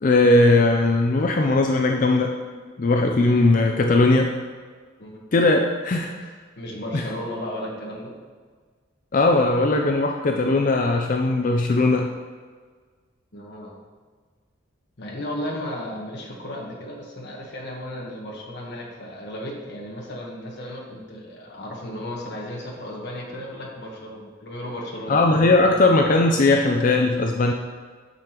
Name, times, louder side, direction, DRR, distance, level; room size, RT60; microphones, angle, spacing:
voice 1, 0.0-4.3 5.3-6.3 6.9-7.0 9.1-12.1 25.1-27.5, left 2 dB, 40° left, 3 dB, 0.4 m, -19 dB
voice 2, 6.5-8.1 13.3-13.8 15.0-25.2, left 1 dB, 55° left, -3 dB, 1.3 m, -34 dB
9.6 x 6.7 x 3.0 m, 1.5 s
head